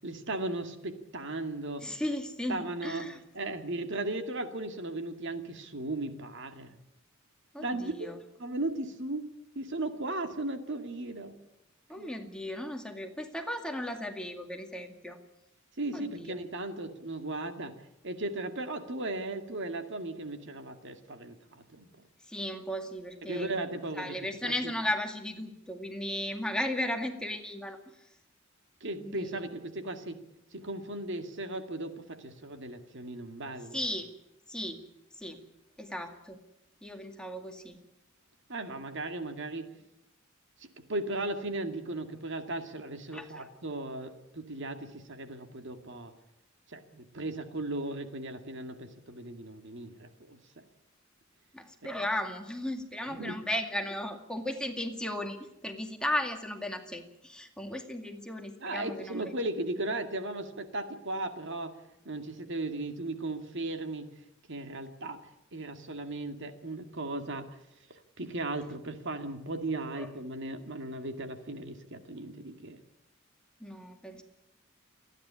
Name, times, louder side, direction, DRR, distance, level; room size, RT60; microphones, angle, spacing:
voice 1, 0.0-2.0 2.5-6.8 7.6-8.1 8.4-9.3 9.6-11.4 12.0-12.1 15.8-17.7 18.0-21.9 23.2-24.2 24.4-24.7 28.8-30.2 30.5-33.8 38.5-39.8 40.6-46.1 46.7-50.6 53.1-53.4 58.6-61.8 62.0-64.1 64.5-65.2 65.5-67.6 67.9-72.8, right 2 dB, 60° right, 7 dB, 2.3 m, -36 dB
voice 2, 1.8-3.2 7.5-8.2 11.9-15.2 15.9-16.4 22.3-23.6 23.9-27.8 29.0-29.4 33.7-34.1 34.5-34.8 35.2-35.4 35.8-36.4 36.8-37.8 43.1-43.5 51.5-55.4 55.6-59.3 70.0-70.1 73.6-74.2, left 1 dB, 5° left, 4 dB, 2.2 m, -35 dB
28.5 x 11.0 x 9.9 m, 0.86 s
head